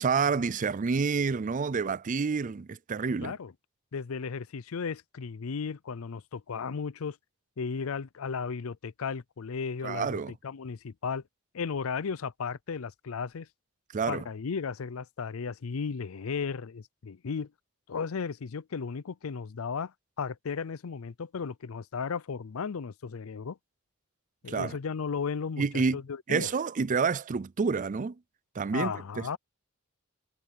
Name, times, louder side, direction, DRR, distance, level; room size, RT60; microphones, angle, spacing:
voice 1, 0.0-3.3 9.8-10.3 13.9-14.2 24.5-24.8 25.6-26.0 26.3-28.2 28.6-29.4, right 5 dB, 40° right, 0.4 m, -28 dB
voice 2, 3.2-3.5 3.9-7.2 7.6-11.2 11.5-13.5 14.1-17.5 17.9-23.6 24.4-26.5 28.7-29.4, left 5 dB, 85° left, 0.5 m, -35 dB
head